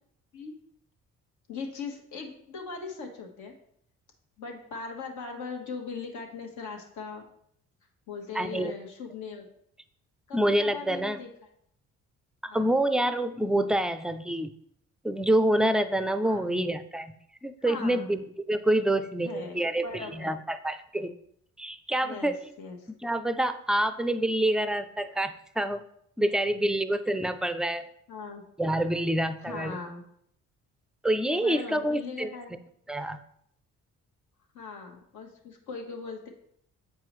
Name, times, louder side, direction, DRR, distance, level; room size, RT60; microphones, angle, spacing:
voice 1, 1.5-3.5 4.4-7.3 8.1-9.5 10.3-11.3 12.5-12.7 16.2-16.4 17.7-18.1 19.2-20.3 22.0-22.9 26.4-26.7 28.1-28.4 29.4-30.0 31.3-32.5 34.5-36.3, left 5 dB, 75° left, 2 dB, 1.3 m, -39 dB
voice 2, 8.3-8.7 10.3-11.2 12.4-14.5 15.0-17.1 17.4-21.1 21.6-22.4 23.0-25.8 26.2-27.9 28.6-29.8 31.0-32.3 32.9-33.2, right 1 dB, ahead, 11 dB, 0.4 m, -27 dB
7.7 x 4.7 x 3.0 m, 0.70 s
cardioid pair, 90°, 30 cm